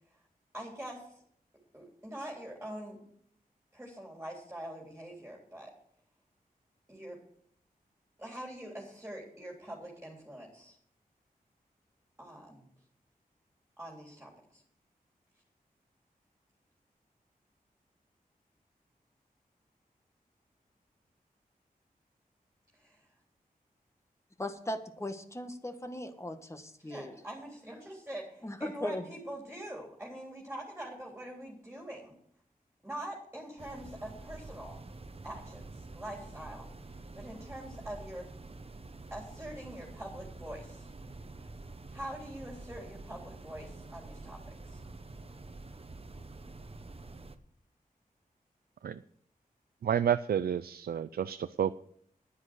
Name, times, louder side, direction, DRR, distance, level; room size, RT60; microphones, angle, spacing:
voice 1, 0.5-1.2 1.7-3.0 3.7-5.7 6.9-7.2 8.2-10.8 12.2-12.7 13.8-14.6 22.7-23.1 26.8-32.1 32.8-34.8 35.2-38.2 39.1-40.9 41.9-44.8, right 1 dB, 10° right, -1 dB, 3.5 m, -44 dB
voice 2, 24.4-27.2 28.4-29.0, left 1 dB, 20° left, 7 dB, 1.6 m, -38 dB
sound 1, 33.6-47.4, right 2 dB, 40° right, 1.1 m, -47 dB
voice 3, 49.8-51.8, right 9 dB, 85° right, 13 dB, 0.4 m, -30 dB
10.5 x 9.8 x 6.3 m, 0.65 s
wide cardioid pair, 65°, 15 cm